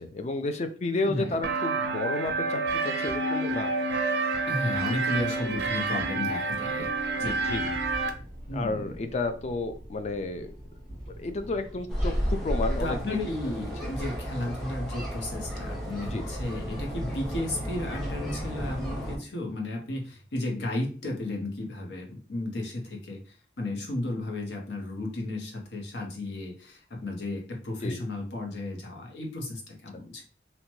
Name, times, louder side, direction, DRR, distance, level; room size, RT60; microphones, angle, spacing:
voice 1, 0.0-3.7 7.5-7.7 8.5-10.5 11.2-13.2 16.1-16.2 27.8-28.0, left 2 dB, 40° left, 8 dB, 0.3 m, -31 dB
voice 2, 1.0-1.4 4.5-6.9 7.2-7.5 8.5-9.1 12.8-30.2, left 2 dB, 80° left, 0 dB, 0.8 m, -34 dB
sound 1, 1.4-8.1, right 3 dB, 80° right, 0.5 m, -28 dB
sound 2, 5.2-19.2, equal, 20° left, 1.4 m, -40 dB
sound 3, 11.9-19.2, equal, ahead, 0.6 m, -34 dB
2.8 x 2.1 x 3.0 m, 0.38 s
head